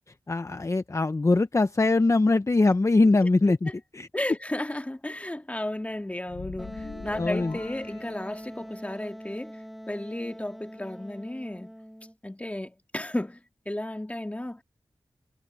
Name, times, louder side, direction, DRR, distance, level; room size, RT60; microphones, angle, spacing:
voice 1, 0.3-3.7 4.0-4.1 7.2-7.6, left 3 dB, 35° left, 0.8 m, -22 dB
voice 2, 4.1-11.7 12.2-14.6, left 1 dB, 15° left, 1.9 m, -34 dB
sound 1, 6.3-8.8, left 5 dB, 80° left, 2.1 m, -43 dB
Wind instrument woodwind instrument, 6.6-12.1, equal, ahead, 1.1 m, -42 dB
cardioid pair, 50°, 9 cm